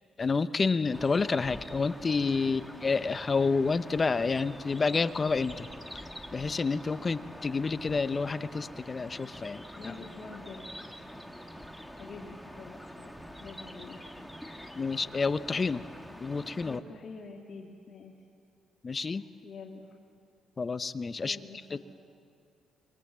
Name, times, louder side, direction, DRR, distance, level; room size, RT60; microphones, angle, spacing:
voice 1, 0.2-5.7 5.9-9.6 14.7-15.8 16.2-16.8 18.8-19.2 20.6-21.4 21.7-21.8, left 4 dB, 35° left, 13 dB, 0.8 m, -29 dB
sound 1, 0.9-16.8, equal, ahead, 1.6 m, -45 dB
voice 2, 9.7-10.7 12.0-13.1 13.4-14.9 16.6-18.1 19.1-19.9 21.2-21.8, left 4 dB, 50° left, -1 dB, 2.4 m, -47 dB
25.0 x 23.0 x 7.5 m, 2.3 s
cardioid pair, 90°, 0 cm